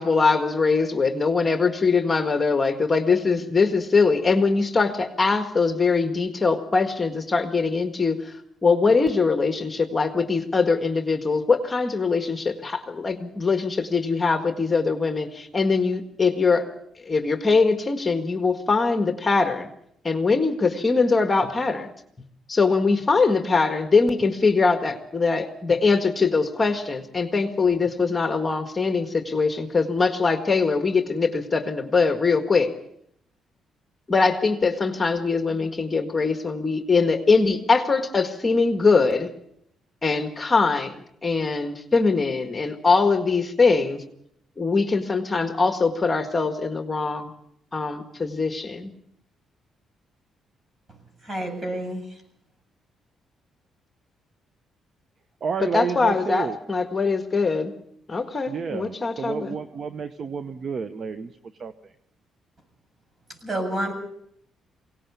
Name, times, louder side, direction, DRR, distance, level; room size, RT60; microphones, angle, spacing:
voice 1, 0.0-8.3 8.6-16.7 17.0-19.7 20.0-21.9 22.5-32.7 34.1-39.3 40.0-41.0 41.2-44.0 44.6-47.3 47.7-48.9 55.6-57.7 58.1-59.5, left 4 dB, 25° left, 1.7 m, -22 dB
voice 2, 51.2-52.0 63.4-63.9, right 1 dB, 35° right, 7.6 m, -28 dB
voice 3, 55.4-56.6 58.5-61.3 61.6-61.7, right 6 dB, 50° right, 0.9 m, -30 dB
22.5 x 18.0 x 6.9 m
cardioid pair, 90°, 0 cm